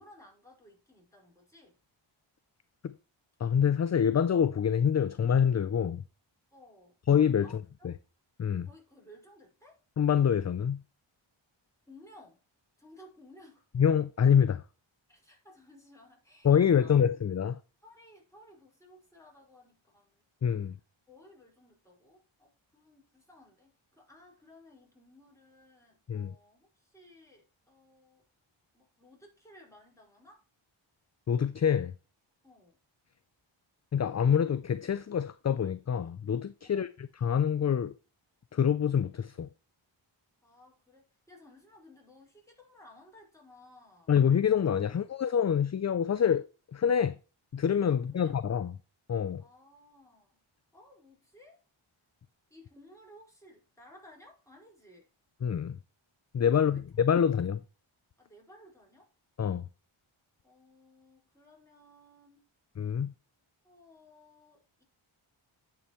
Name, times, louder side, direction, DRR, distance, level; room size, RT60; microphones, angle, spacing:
voice 1, 0.0-1.8 6.5-7.0 7.4-8.0 8.6-9.8 11.9-12.4 12.8-13.7 15.1-17.0 17.8-20.2 21.1-28.2 28.7-30.4 32.4-32.8 36.6-37.0 40.4-44.1 47.9-48.3 49.4-50.4 50.7-51.6 52.5-55.1 56.5-57.1 58.2-59.1 60.4-62.4 63.6-64.8, left 1 dB, 5° left, 5.2 m, -57 dB
voice 2, 3.4-6.0 7.1-7.5 7.8-7.9 8.4-8.7 10.0-10.8 13.7-14.6 16.4-17.6 20.4-20.8 26.1-26.3 31.3-31.9 33.9-37.9 38.5-39.5 44.1-46.4 46.7-47.2 47.5-48.7 49.1-49.4 55.4-55.8 56.3-57.6 59.4-59.7 62.8-63.1, left 8 dB, 35° left, 0.4 m, -26 dB
11.0 x 5.7 x 3.1 m
cardioid pair, 60°, 50 cm